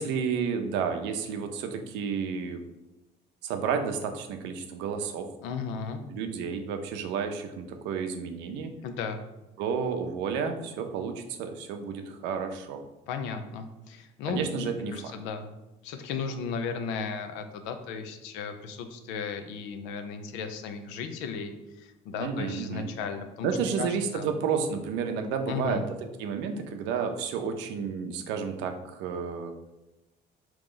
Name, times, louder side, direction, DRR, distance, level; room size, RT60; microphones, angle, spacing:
voice 1, 0.0-2.6 3.4-5.3 6.1-8.7 9.6-12.8 14.3-15.1 22.2-22.9 23.4-29.5, right 6 dB, 85° right, 6 dB, 0.6 m, -31 dB
voice 2, 5.4-6.0 8.8-9.2 13.1-15.5 15.8-23.5 23.8-24.3 25.5-25.8, left 5 dB, 90° left, 7 dB, 0.5 m, -35 dB
3.8 x 3.0 x 3.8 m, 0.98 s
cardioid pair, 105°, 18 cm